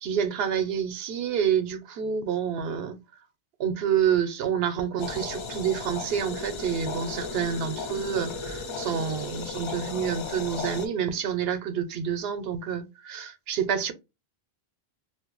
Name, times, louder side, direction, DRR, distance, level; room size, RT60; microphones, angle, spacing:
voice 1, 0.0-3.0 3.6-13.9, right 8 dB, 75° right, 0.8 m, -28 dB
sound 1, 5.0-10.9, left 4 dB, 45° left, 0.4 m, -35 dB
2.5 x 2.1 x 3.7 m
omnidirectional pair, 1.0 m